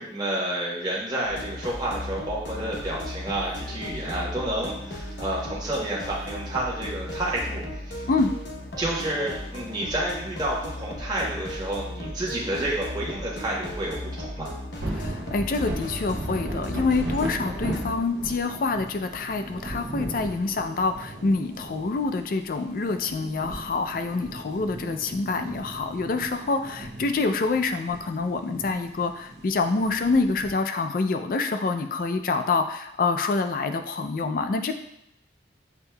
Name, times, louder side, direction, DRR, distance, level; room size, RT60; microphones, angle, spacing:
voice 1, 0.0-8.1 8.8-14.5, right 1 dB, 20° right, -5 dB, 1.0 m, -30 dB
sound 1, 1.2-18.0, left 1 dB, 75° left, 0.9 m, -36 dB
sound 2, 14.8-30.5, right 1 dB, 65° right, 0.8 m, -37 dB
voice 2, 14.9-34.8, left 3 dB, 50° left, 7 dB, 0.3 m, -26 dB
7.9 x 2.7 x 2.2 m, 0.81 s
head